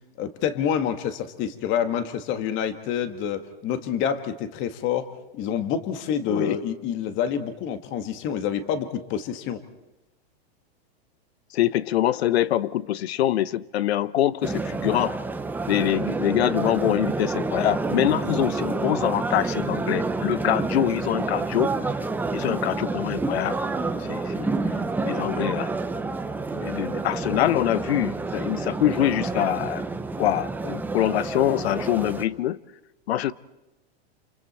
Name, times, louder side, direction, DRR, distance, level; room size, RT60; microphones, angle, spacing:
voice 1, 0.2-9.6, left 8 dB, 35° left, 1.9 m, -27 dB
voice 2, 11.5-15.2 15.7-21.7 22.3-23.6 24.1-24.5 25.0-25.7 26.5-29.8 30.2-32.6 33.1-33.3, left 12 dB, 70° left, 0.9 m, -24 dB
sound 1, 14.4-32.3, right 3 dB, 5° right, 0.8 m, -28 dB
29.0 x 28.0 x 4.3 m
hypercardioid pair, 135°, 32 cm